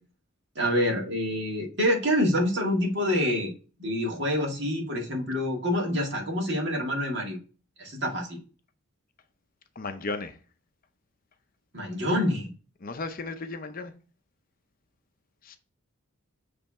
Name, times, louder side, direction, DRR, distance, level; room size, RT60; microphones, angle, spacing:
voice 1, 0.6-3.5 3.8-7.4 7.8-8.4 11.7-12.5, equal, 55° right, 2.0 m, -26 dB
voice 2, 9.8-10.3 12.8-13.9 15.5-15.6, left 3 dB, 40° left, 0.6 m, -34 dB
7.2 x 3.4 x 4.3 m
head